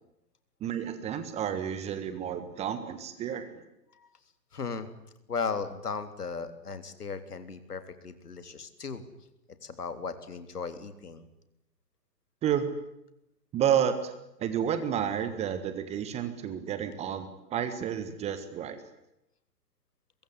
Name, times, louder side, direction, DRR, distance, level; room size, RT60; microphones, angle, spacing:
voice 1, 0.6-3.6 12.4-12.7 13.5-14.1 14.4-18.8, right 9 dB, 15° right, 10 dB, 1.5 m, -30 dB
voice 2, 4.5-4.9 5.3-9.0 9.6-11.2, left 5 dB, 65° left, 9 dB, 3.6 m, -36 dB
23.5 x 22.0 x 10.0 m, 0.85 s
figure-of-eight pair, 125°, 50 cm